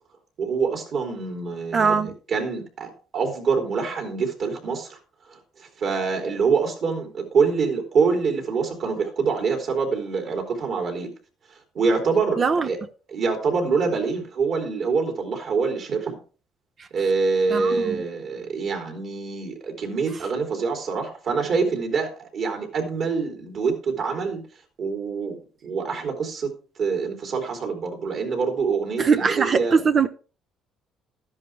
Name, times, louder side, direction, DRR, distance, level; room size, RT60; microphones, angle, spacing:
voice 1, 0.4-5.0 5.3-11.1 11.7-12.8 13.1-16.2 16.9-24.4 24.8-25.4 25.6-29.8, right 5 dB, 50° right, 3.5 m, -25 dB
voice 2, 1.7-2.1 12.4-12.7 17.5-18.0 29.0-30.1, right 5 dB, 35° right, 0.8 m, -21 dB
12.5 x 10.5 x 3.3 m
cardioid pair, 135°, 0 cm